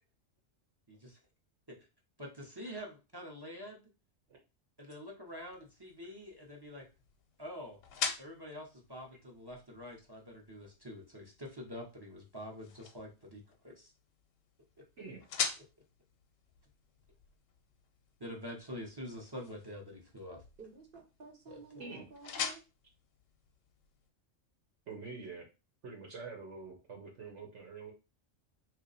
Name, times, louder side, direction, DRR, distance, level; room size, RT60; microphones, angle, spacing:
voice 1, 0.9-1.2 2.2-3.8 4.8-6.8 7.4-7.8 8.2-13.9 18.2-20.4 21.5-21.6, equal, 25° right, 0 dB, 0.7 m, -46 dB
sound 1, 5.3-24.1, left 6 dB, 85° left, 1.0 m, -45 dB
voice 2, 20.6-22.6, right 4 dB, 50° right, 2 dB, 1.0 m, -52 dB
voice 3, 24.9-25.5 25.8-27.9, right 4 dB, 70° right, 1 dB, 1.1 m, -46 dB
3.1 x 2.5 x 4.0 m, 0.29 s
omnidirectional pair, 1.3 m